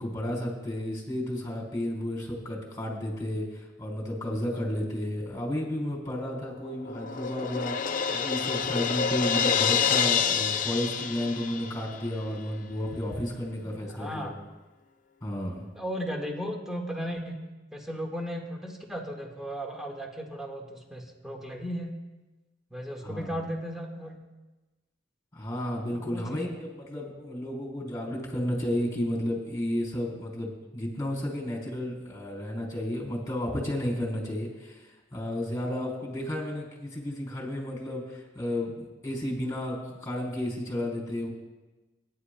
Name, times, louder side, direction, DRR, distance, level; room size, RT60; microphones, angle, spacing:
voice 1, 0.0-14.3 15.2-15.6 23.0-23.3 25.3-41.3, left 1 dB, 15° left, -1 dB, 3.7 m, -32 dB
Crash cymbal, 6.3-12.0, left 7 dB, 45° left, 0.5 m, -28 dB
voice 2, 13.9-14.3 15.7-17.4 17.7-22.0 22.7-24.2 25.9-26.4, equal, 5° right, -1 dB, 1.7 m, -35 dB
25.5 x 10.5 x 2.3 m, 1.2 s
head